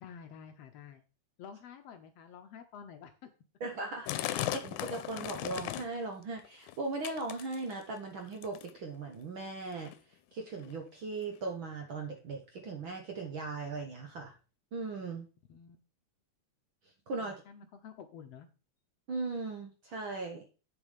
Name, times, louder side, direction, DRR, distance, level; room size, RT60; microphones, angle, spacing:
voice 1, 0.0-1.0 1.4-3.3 15.5-15.8 17.2-18.5, left 7 dB, 70° left, 6 dB, 1.7 m, -50 dB
voice 2, 3.6-9.9 10.3-14.3 14.7-15.3 17.1-17.4 19.1-20.4, right 3 dB, 55° right, 3 dB, 1.5 m, -38 dB
sound 1, 4.1-6.0 6.4-6.8 7.0-7.9 8.4-8.8 9.5-9.6 9.8-9.9 10.6-10.7 11.4-11.5, left 14 dB, 90° left, 2.1 m, -37 dB
8.1 x 6.9 x 5.1 m, 0.34 s
omnidirectional pair, 3.4 m